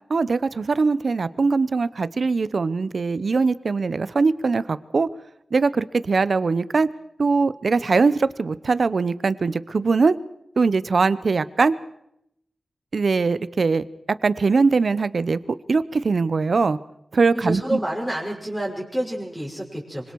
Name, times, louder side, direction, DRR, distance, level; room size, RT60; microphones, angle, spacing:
voice 1, 0.1-5.1 5.5-6.9 7.2-10.2 10.6-11.8 12.9-13.8 14.2-15.4 15.7-16.8 17.1-17.8, right 4 dB, 60° right, 16 dB, 0.9 m, -21 dB
voice 2, 17.3-20.1, right 1 dB, ahead, -2 dB, 6.0 m, -28 dB
25.5 x 25.5 x 4.8 m, 0.78 s
wide cardioid pair, 90°, 0 cm